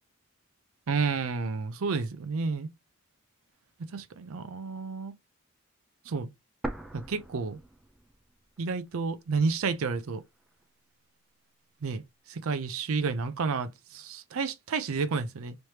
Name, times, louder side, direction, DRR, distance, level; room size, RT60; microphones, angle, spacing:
voice 1, 0.9-2.7 3.9-5.1 6.1-6.3 6.9-7.6 8.6-10.2 11.8-12.0 12.3-15.6, right 4 dB, 80° right, 0.5 m, -30 dB
sound 1, 6.6-8.6 8.9-9.0 9.7-10.6, right 1 dB, ahead, 0.4 m, -40 dB
3.2 x 3.1 x 2.8 m
head